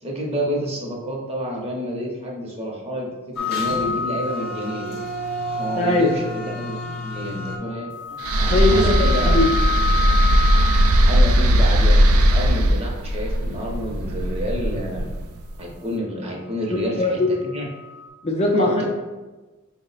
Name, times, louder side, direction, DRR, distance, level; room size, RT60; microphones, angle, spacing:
voice 1, 0.0-5.0 5.5-7.9 8.4-9.3 10.9-15.1 15.6-17.2 17.5-17.7 18.6-18.8, equal, 30° right, -1 dB, 0.7 m, -29 dB
sound 1, 3.4-5.0 7.0-11.3 17.3-18.1, left 5 dB, 85° left, 0.5 m, -29 dB
sound 2, 3.4-7.6, right 1 dB, 45° left, 0.8 m, -31 dB
voice 2, 5.8-6.1 8.5-8.9 9.3-9.5 16.7-17.5 18.2-18.8, left 2 dB, 30° left, 1 dB, 0.4 m, -20 dB
sound 3, 8.2-15.4, right 1 dB, 80° right, 0.4 m, -18 dB
4.7 x 2.1 x 3.8 m, 1.2 s
head